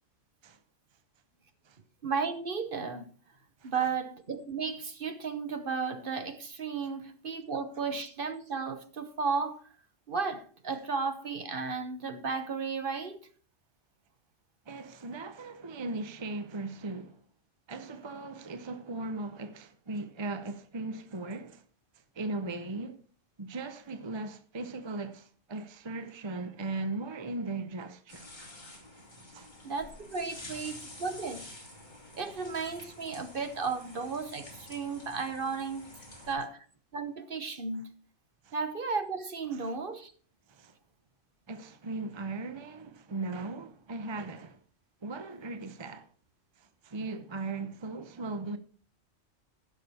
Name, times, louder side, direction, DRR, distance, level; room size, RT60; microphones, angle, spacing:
voice 1, 2.0-3.1 3.6-9.6 10.1-13.2 29.6-31.4 32.1-35.8 36.3-36.6 36.9-37.9 38.5-40.1, right 5 dB, 45° right, 1.0 m, -34 dB
voice 2, 14.7-17.2 17.7-21.6 22.1-23.0 23.4-28.3 29.3-29.5 30.5-30.6 36.1-36.3 38.4-38.5 39.5-39.6 40.5-40.7 41.5-44.6 45.0-46.1 46.6-48.6, right 3 dB, 25° right, 0.7 m, -38 dB
sound 1, 28.1-36.3, left 1 dB, 35° left, 3.0 m, -49 dB
15.5 x 6.4 x 4.2 m
omnidirectional pair, 1.3 m